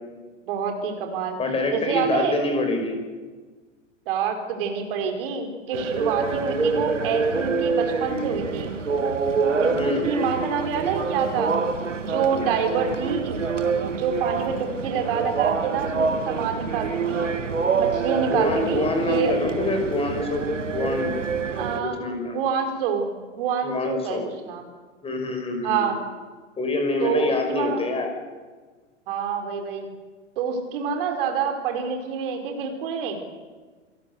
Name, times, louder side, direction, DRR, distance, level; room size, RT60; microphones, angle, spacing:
voice 1, 0.5-2.4 4.1-8.7 9.5-11.6 12.0-13.4 14.0-17.3 17.7-19.3 21.6-22.0 22.3-24.6 25.6-26.0 27.0-27.8 29.1-29.9 30.4-33.2, right 6 dB, 45° right, 5 dB, 4.9 m, -27 dB
voice 2, 1.4-3.0 9.7-10.0 18.3-20.4 20.7-21.2 21.6-22.4 23.6-24.2 25.0-25.9 26.6-28.1, left 2 dB, 15° left, 5 dB, 5.7 m, -26 dB
sound 1, 5.7-21.8, right 4 dB, 75° right, 1.9 m, -26 dB
28.5 x 18.0 x 8.2 m, 1.4 s
figure-of-eight pair, 100°, 37 cm